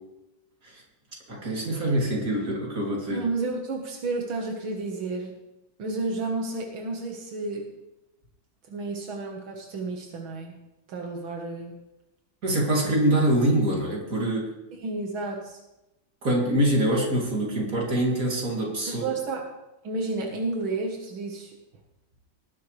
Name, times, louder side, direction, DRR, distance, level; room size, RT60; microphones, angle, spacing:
voice 1, 1.3-3.2 12.4-14.5 16.2-19.0, right 1 dB, 45° right, -2 dB, 3.5 m, -24 dB
voice 2, 3.1-5.3 5.8-7.7 8.7-10.6 10.9-11.7 14.7-15.6 18.9-19.5 19.8-21.6, right 3 dB, 85° right, 1 dB, 2.2 m, -31 dB
19.0 x 11.0 x 3.3 m, 0.94 s
omnidirectional pair, 2.1 m